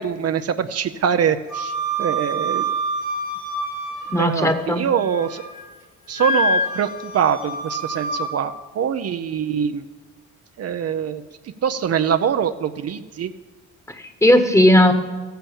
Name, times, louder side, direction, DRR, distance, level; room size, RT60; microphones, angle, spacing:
voice 1, 0.0-1.7 2.0-2.7 4.2-5.4 6.1-9.8 10.6-11.2 11.6-13.3, right 8 dB, 55° right, 9 dB, 0.7 m, -23 dB
Wind instrument woodwind instrument, 1.5-4.5 4.9-5.6 6.1-8.3, right 1 dB, 85° left, 4.2 m, -26 dB
voice 2, 4.1-4.8 13.9-14.9, left 1 dB, 10° left, 8 dB, 1.4 m, -16 dB
14.0 x 10.5 x 7.1 m, 1.3 s
cardioid pair, 90°, 30 cm